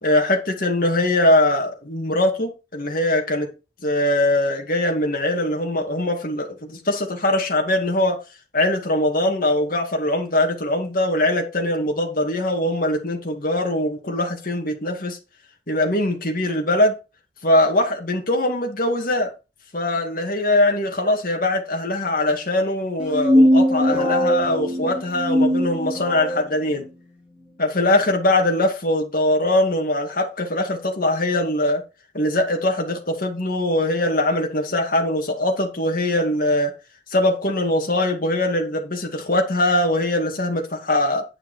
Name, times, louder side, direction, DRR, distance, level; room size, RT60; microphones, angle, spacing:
voice 1, 0.0-3.5 3.8-8.2 8.5-15.2 15.7-16.9 17.4-19.3 19.7-26.9 27.6-31.8 32.1-36.7 37.1-41.2, left 1 dB, 50° left, 2.3 m, -21 dB
sound 1, 23.0-26.4, equal, 5° right, 3.3 m, -19 dB
10.0 x 5.8 x 4.5 m
head